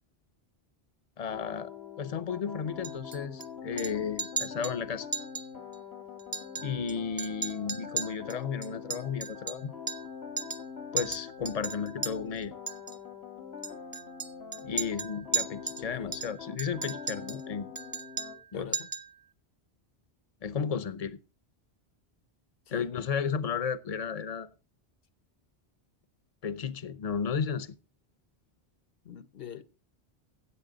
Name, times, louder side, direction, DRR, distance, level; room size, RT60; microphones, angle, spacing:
voice 1, 1.2-1.7 2.0-5.1 6.6-9.7 10.9-12.5 14.6-17.7 18.5-18.7 20.4-21.2 22.7-24.5 26.4-27.7, left 6 dB, 40° left, 0.7 m, -33 dB
sound 1, 1.3-18.4, left 7 dB, 90° left, 1.9 m, -44 dB
Chink clink, 2.8-3.5 3.8-4.8 5.1-5.5 5.7-5.8 6.2-6.9 7.2-10.1 10.4-10.7 11.0-12.1 12.7-13.0 13.6-15.8 16.1-17.4 17.8-18.5 18.7-19.1, right 5 dB, 30° right, 0.4 m, -36 dB
voice 2, 15.8-16.2 18.5-18.9 22.7-22.9 29.0-29.6, left 8 dB, 65° left, 1.0 m, -44 dB
15.0 x 8.0 x 3.9 m
omnidirectional pair, 1.1 m